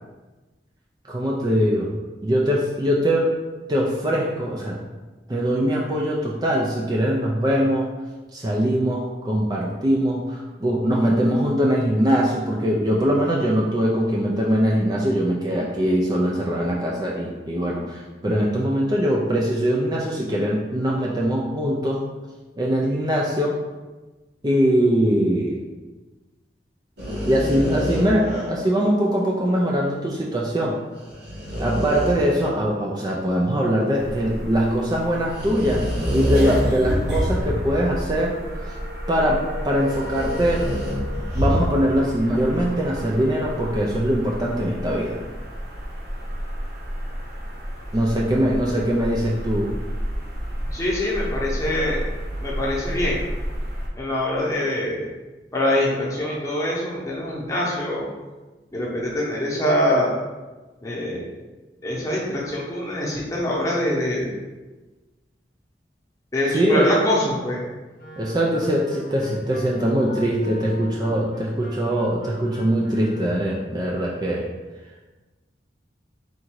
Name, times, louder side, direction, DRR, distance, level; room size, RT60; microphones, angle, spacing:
voice 1, 1.0-1.9 2.2-3.3 3.7-4.8 5.3-7.9 8.3-22.0 22.6-23.6 24.4-25.6 27.3-30.8 31.6-35.8 36.1-38.7 39.1-40.6 41.3-45.2 47.9-49.7 66.5-66.9 68.2-74.4, equal, 25° right, -3 dB, 0.4 m, -22 dB
sound 1, 27.0-28.6 31.0-32.5 35.3-38.0 38.6-38.7 39.9-41.8, equal, 75° right, 1.4 m, -26 dB
sound 2, 34.0-53.9, equal, 55° right, 0.8 m, -32 dB
voice 2, 50.6-52.0 52.4-53.2 54.0-55.1 55.5-58.1 58.7-60.1 60.8-61.3 61.8-64.3 66.3-67.6, left 1 dB, 20° left, -5 dB, 0.9 m, -24 dB
Wind instrument woodwind instrument, 68.0-73.7, left 1 dB, 50° left, 0.8 m, -42 dB
3.7 x 2.6 x 4.5 m, 1.2 s
head